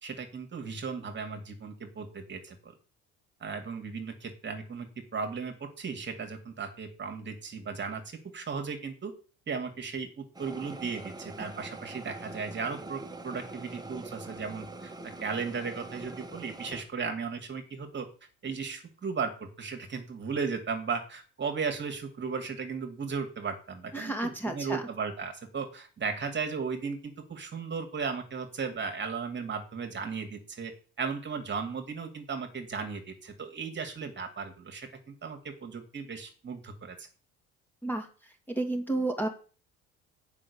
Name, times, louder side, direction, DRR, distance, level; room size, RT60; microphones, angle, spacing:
voice 1, 0.0-2.7 3.4-4.9 5.1-9.1 9.5-18.1 18.4-37.1, right 5 dB, 35° right, 5 dB, 2.2 m, -36 dB
sound 1, 10.3-16.8, right 2 dB, 10° right, 1.9 m, -44 dB
voice 2, 23.9-24.9 37.8-38.1 38.5-39.3, right 2 dB, 5° left, 4 dB, 2.2 m, -31 dB
7.6 x 5.6 x 6.9 m, 0.38 s
supercardioid pair, 80°, 32 cm